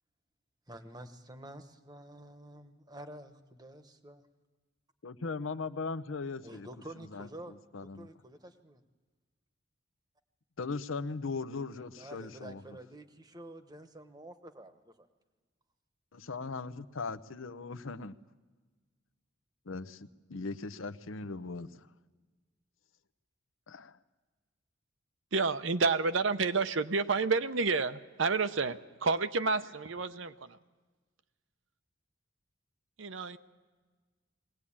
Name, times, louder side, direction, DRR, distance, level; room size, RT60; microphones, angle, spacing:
voice 1, 0.7-4.2 6.4-8.8 12.0-15.1, right 1 dB, 20° right, 1.1 m, -49 dB
voice 2, 5.0-6.7 7.0-8.1 10.6-12.6 16.1-18.1 19.7-21.9 23.7-24.0, left 4 dB, 80° left, 0.8 m, -39 dB
voice 3, 25.3-30.6 33.0-33.4, right 4 dB, 70° right, 0.8 m, -30 dB
21.5 x 18.0 x 8.7 m
head